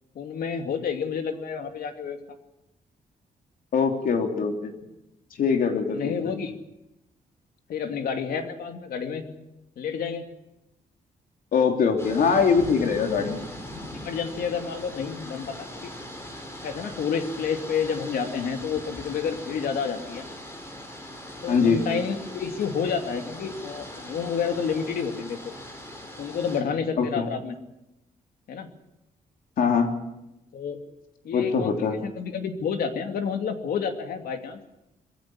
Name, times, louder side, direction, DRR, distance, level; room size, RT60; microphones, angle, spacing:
voice 1, 0.1-2.2 5.9-6.6 7.7-9.3 9.8-10.3 13.9-15.9 16.6-20.3 21.4-25.4 26.2-27.6 28.5-28.7 30.5-30.8 31.2-34.6, left 6 dB, 85° left, 5 dB, 2.7 m, -29 dB
voice 2, 3.7-4.7 5.4-6.2 11.5-13.5 21.5-21.8 27.0-27.3 29.6-29.9 31.3-31.9, left 5 dB, 70° left, 4 dB, 3.3 m, -22 dB
sound 1, 12.0-26.6, left 1 dB, 15° left, 4.4 m, -40 dB
22.0 x 15.5 x 9.9 m, 0.91 s
wide cardioid pair, 180°, 15 cm